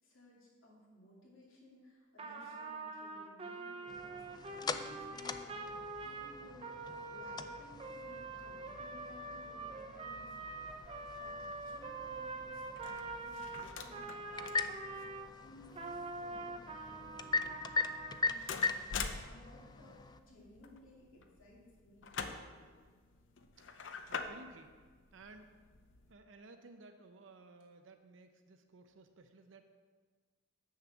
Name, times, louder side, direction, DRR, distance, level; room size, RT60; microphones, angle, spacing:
voice 1, 0.0-22.7, left 1 dB, 90° left, -4 dB, 2.6 m, -59 dB
Trumpet, 2.2-15.3 15.7-18.3, right 3 dB, 30° right, 0.6 m, -45 dB
sound 1, 3.9-20.2, left 4 dB, 20° left, 0.3 m, -42 dB
sound 2, 10.7-26.1, left 5 dB, 65° left, 0.6 m, -48 dB
voice 2, 19.6-20.0 23.6-23.8 24.1-24.8 25.1-25.5 26.1-29.6, right 2 dB, 70° right, 6 dB, 0.7 m, -57 dB
7.3 x 6.6 x 6.2 m, 1.5 s
head